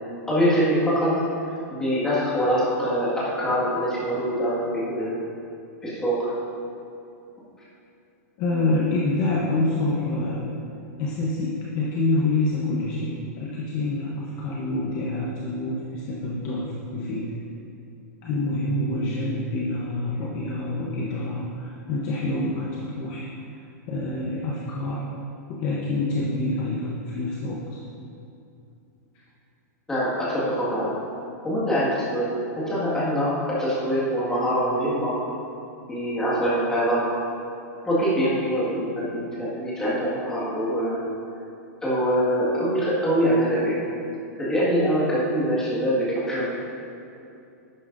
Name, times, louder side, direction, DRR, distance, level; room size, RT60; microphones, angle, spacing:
voice 1, 0.3-1.2 1.7-5.2 5.8-6.3 29.9-30.9 31.4-35.2 35.9-37.1 37.8-41.0 41.8-43.9 44.4-46.4, equal, 5° left, -8 dB, 1.8 m, -24 dB
voice 2, 8.4-10.4 11.0-17.3 18.2-23.3 23.9-25.1 25.5-27.8, left 2 dB, 30° left, -4 dB, 0.8 m, -27 dB
11.0 x 8.6 x 2.6 m, 2.7 s
supercardioid pair, 175°, 9 cm